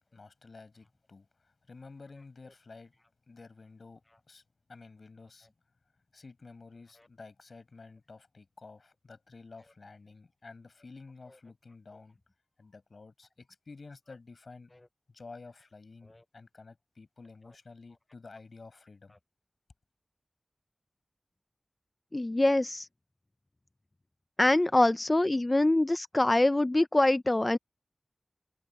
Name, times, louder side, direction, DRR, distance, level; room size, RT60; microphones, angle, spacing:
voice 1, 0.0-2.9 3.3-4.4 4.7-5.5 6.1-12.2 12.6-14.7 15.1-19.2, left 3 dB, 85° left, 6.5 m, -51 dB
voice 2, 22.1-22.9 24.4-27.6, left 2 dB, 35° left, 0.5 m, -24 dB
wide cardioid pair, 60°, 0 cm